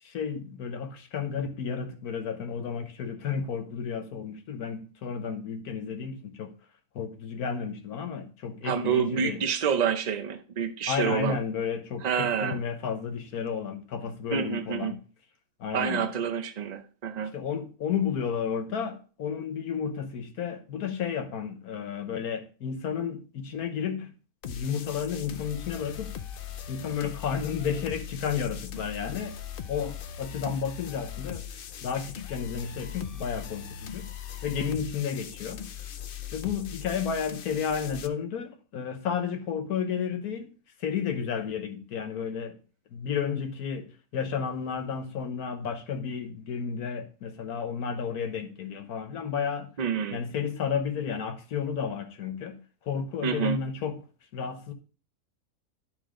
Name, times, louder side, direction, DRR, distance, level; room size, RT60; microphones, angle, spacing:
voice 1, 0.0-6.5 6.9-9.4 10.9-15.0 15.6-16.1 17.3-24.1 24.4-26.1 26.7-29.4 29.7-31.4 31.8-34.1 34.4-35.6 36.3-40.5 40.8-42.6 42.9-49.7 50.1-52.6 52.8-54.0 54.3-54.7, left 7 dB, 80° left, 1.5 m, -32 dB
voice 2, 8.6-11.4 12.0-12.6 14.3-14.9 15.7-17.3 49.8-50.2 53.2-53.6, right 7 dB, 40° right, 0.6 m, -28 dB
sound 1, 24.4-38.1, left 9 dB, 60° left, 0.5 m, -40 dB
11.5 x 4.2 x 3.8 m
omnidirectional pair, 1.6 m